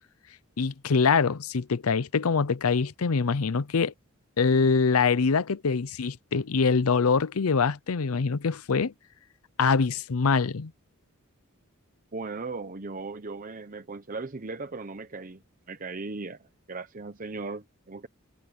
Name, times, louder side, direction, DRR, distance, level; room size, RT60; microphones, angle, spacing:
voice 1, 0.6-3.9 4.4-8.9 9.6-10.7, left 5 dB, 90° left, 0.6 m, -24 dB
voice 2, 12.1-18.1, right 3 dB, 40° right, 0.8 m, -38 dB
head